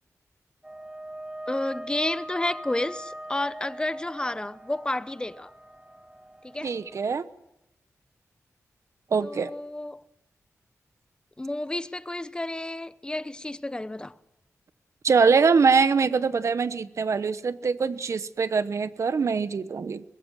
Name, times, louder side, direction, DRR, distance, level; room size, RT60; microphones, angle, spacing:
sound 1, 0.6-7.0, right 1 dB, 15° right, 1.3 m, -42 dB
voice 1, 1.5-5.5 6.4-6.7 9.2-10.0 11.4-14.2, left 1 dB, 15° left, 0.8 m, -31 dB
voice 2, 6.6-7.3 9.1-9.5 15.0-20.0, right 5 dB, 65° right, 1.0 m, -23 dB
23.0 x 21.0 x 6.4 m
wide cardioid pair, 95°, 6 cm